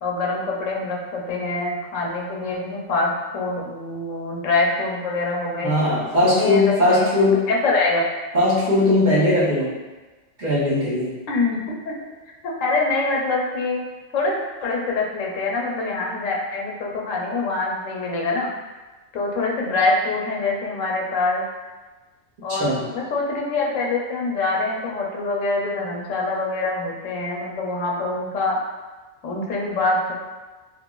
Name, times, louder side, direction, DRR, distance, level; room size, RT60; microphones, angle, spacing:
voice 1, 0.0-5.7 6.2-8.0 11.3-11.6 11.8-11.9 12.4-13.8 14.1-14.3 14.6-18.5 19.1-21.5 22.4-28.6 29.2-30.1, left 3 dB, 85° left, -2 dB, 1.0 m, -24 dB
voice 2, 5.6-7.4 8.3-9.7 10.4-11.1 22.5-22.8, left 1 dB, 45° right, -9 dB, 0.7 m, -19 dB
3.2 x 2.4 x 2.2 m, 1.2 s
omnidirectional pair, 1.3 m